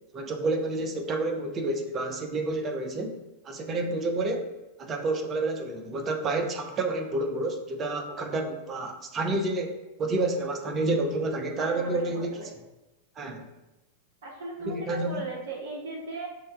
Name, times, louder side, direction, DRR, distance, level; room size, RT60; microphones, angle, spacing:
voice 1, 0.1-3.2 3.4-4.5 4.8-12.4 13.2-13.5 14.6-15.3, right 2 dB, 25° right, 4 dB, 0.4 m, -29 dB
voice 2, 11.5-12.5 14.2-16.3, right 3 dB, 55° right, -1 dB, 0.8 m, -37 dB
6.2 x 2.1 x 2.3 m, 1.0 s
figure-of-eight pair, 90°, 0 cm